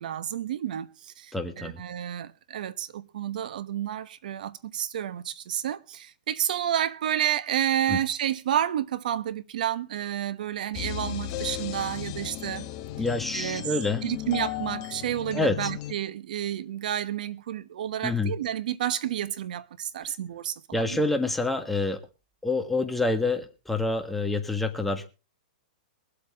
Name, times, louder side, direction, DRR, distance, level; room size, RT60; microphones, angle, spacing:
voice 1, 0.0-12.7 13.3-13.6 14.0-21.0, right 10 dB, 70° right, 1.1 m, -30 dB
voice 2, 1.3-1.8 7.9-8.0 13.0-14.0 15.3-15.7 18.0-18.3 20.0-20.1 20.7-22.0 22.4-25.1, left 2 dB, 5° left, 1.5 m, -27 dB
sound 1, 10.7-15.9, left 13 dB, 45° left, 1.1 m, -35 dB
23.0 x 8.2 x 3.6 m
hypercardioid pair, 140°, 5 cm